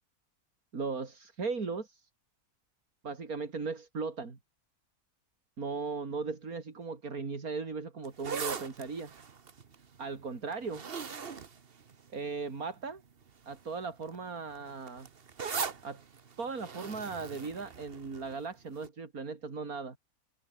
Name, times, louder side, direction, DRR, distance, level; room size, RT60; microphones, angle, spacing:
voice 1, 0.7-2.1 3.0-4.4 5.6-9.1 10.0-10.9 12.1-13.0 13.5-15.1 15.8-16.0 16.4-20.0, right 4 dB, 70° right, 3.3 m, -37 dB
sound 1, 8.0-12.5 13.2-13.5 13.8-18.4 18.8-18.9, right 6 dB, 40° right, 1.3 m, -40 dB
open air
omnidirectional pair, 1.6 m